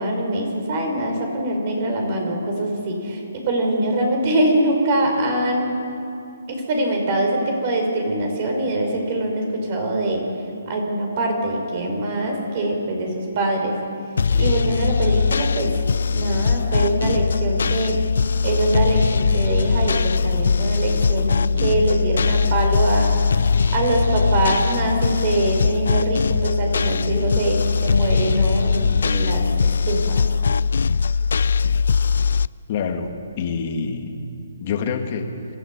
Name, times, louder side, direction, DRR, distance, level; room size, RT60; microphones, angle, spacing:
voice 1, 0.0-5.8 6.5-10.2 10.7-13.8 14.3-15.8 16.1-18.0 18.4-23.1 23.7-30.3, right 1 dB, 35° right, 2 dB, 4.8 m, -23 dB
sound 1, 14.2-32.5, left 5 dB, 70° left, 0.4 m, -20 dB
voice 2, 32.7-33.1 33.4-34.3 34.6-35.3, left 5 dB, 35° left, 4 dB, 2.1 m, -26 dB
25.0 x 14.0 x 8.5 m, 2.6 s
hypercardioid pair, 155°, 0 cm